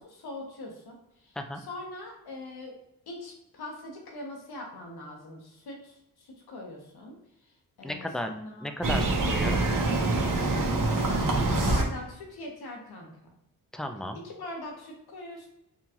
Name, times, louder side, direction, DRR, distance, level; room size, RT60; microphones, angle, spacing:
voice 1, 0.0-2.8 3.1-7.1 7.4-7.5 7.8-8.7 11.4-13.1 14.2-15.5, left 2 dB, 85° left, 0 dB, 1.2 m, -42 dB
voice 2, 7.8-8.3 8.6-9.6 13.7-14.2, left 1 dB, ahead, 6 dB, 0.5 m, -34 dB
sound 1, 8.8-11.8, right 2 dB, 60° right, 1.1 m, -25 dB
5.5 x 2.4 x 3.0 m, 0.85 s
cardioid pair, 55°, 37 cm